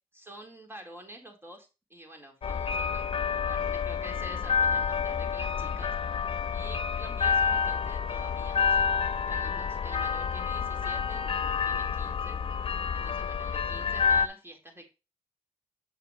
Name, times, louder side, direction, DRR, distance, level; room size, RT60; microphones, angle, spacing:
voice 1, 0.1-5.9 6.5-12.4 12.9-14.9, right 1 dB, 20° right, 3 dB, 4.0 m, -48 dB
sound 1, 2.4-14.3, left 6 dB, 45° left, 1.0 m, -29 dB
9.5 x 6.8 x 3.1 m, 0.28 s
supercardioid pair, 45°, 13 cm